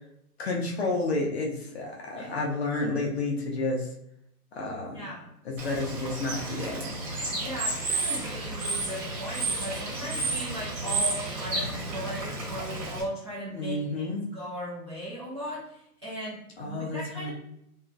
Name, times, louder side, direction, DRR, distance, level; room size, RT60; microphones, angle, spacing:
voice 1, 0.4-3.9 4.5-5.0 5.5-6.9 13.5-14.2 16.6-17.3, left 2 dB, 45° left, -1 dB, 0.5 m, -30 dB
voice 2, 4.9-5.3 7.3-17.3, equal, 20° right, -10 dB, 0.5 m, -38 dB
Bird / Water, 5.6-13.0, right 3 dB, 50° right, 1.2 m, -32 dB
2.8 x 2.4 x 2.6 m, 0.76 s
hypercardioid pair, 150°, 46 cm